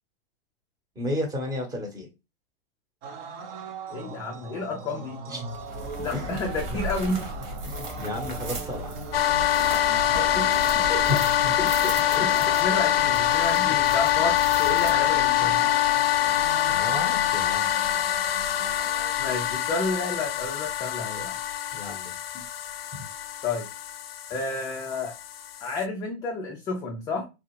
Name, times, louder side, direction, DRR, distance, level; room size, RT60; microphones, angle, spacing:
voice 1, 0.9-2.1 5.3-5.6 6.1-6.4 6.7-6.8 7.6-9.0 11.1-11.5 12.1-12.2 16.7-17.7 21.7-22.2 22.9-23.0, left 1 dB, 10° right, 3 dB, 1.0 m, -32 dB
sound 1, 3.0-19.1, right 5 dB, 40° right, 0.6 m, -40 dB
voice 2, 3.9-5.2 6.0-7.3 10.1-11.2 11.6-11.9 12.2-15.6 19.2-21.4 23.4-23.7 24.3-25.2 25.6-27.3, left 3 dB, 10° left, 1 dB, 0.3 m, -31 dB
sound 2, 5.5-15.4, right 1 dB, 65° right, 1.7 m, -38 dB
sound 3, 9.1-25.8, left 12 dB, 80° left, 0.5 m, -24 dB
3.3 x 2.3 x 3.1 m, 0.27 s
hypercardioid pair, 120°, 30 cm